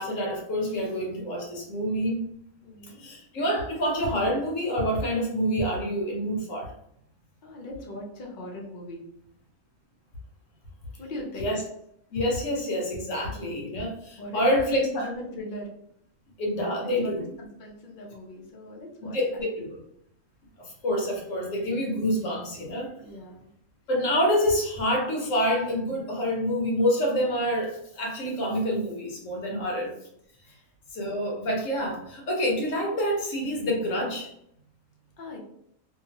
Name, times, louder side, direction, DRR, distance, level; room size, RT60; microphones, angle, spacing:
voice 1, 0.0-2.2 2.8-6.7 11.4-11.6 12.1-15.1 16.4-17.2 19.0-19.8 20.6-22.9 23.9-29.9 30.9-34.3, equal, 70° left, -1 dB, 1.1 m, -27 dB
voice 2, 2.6-3.0 7.4-9.0 11.0-11.6 14.2-15.7 16.8-19.4 23.0-23.5 29.6-29.7 30.4-30.7 35.2-35.4, left 1 dB, 50° left, -1 dB, 0.6 m, -39 dB
2.8 x 2.3 x 2.8 m, 0.74 s
omnidirectional pair, 1.4 m